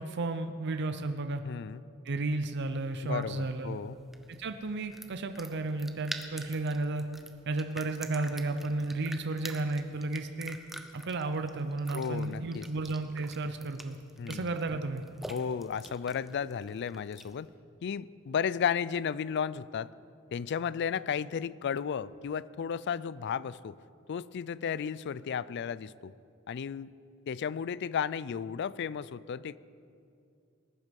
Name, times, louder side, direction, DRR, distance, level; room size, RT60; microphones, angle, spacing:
voice 1, 0.0-1.4 2.0-3.8 4.3-7.1 7.5-10.6 10.9-14.0 14.3-15.0, right 2 dB, 55° right, 8 dB, 0.6 m, -33 dB
voice 2, 1.4-1.8 3.0-4.0 11.9-12.7 14.2-14.5 15.3-17.5 17.8-19.9 20.3-23.8 24.1-26.1 26.5-26.9 27.3-29.6, left 7 dB, 55° left, 19 dB, 0.3 m, -34 dB
sound 1, 2.6-17.5, right 1 dB, ahead, 0.8 m, -47 dB
19.5 x 11.0 x 5.3 m, 2.5 s
head